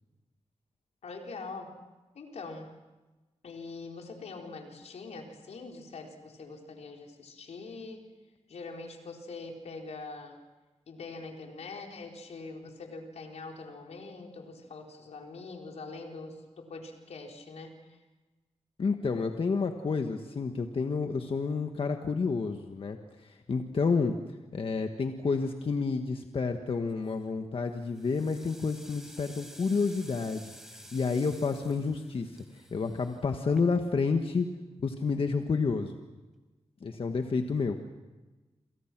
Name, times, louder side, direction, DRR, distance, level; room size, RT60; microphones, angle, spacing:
voice 1, 1.0-1.7 2.1-2.7 3.4-8.0 8.5-10.4 10.9-18.0, left 3 dB, 85° left, 1 dB, 4.3 m, -43 dB
voice 2, 18.8-24.2 24.5-30.5 30.9-34.5 34.8-36.0 36.8-37.7, left 4 dB, 55° left, 5 dB, 1.6 m, -30 dB
sound 1, 26.9-27.3 27.8-34.0, equal, 5° right, 4.5 m, -52 dB
28.0 x 27.5 x 6.1 m, 1.2 s
wide cardioid pair, 100°, 11 cm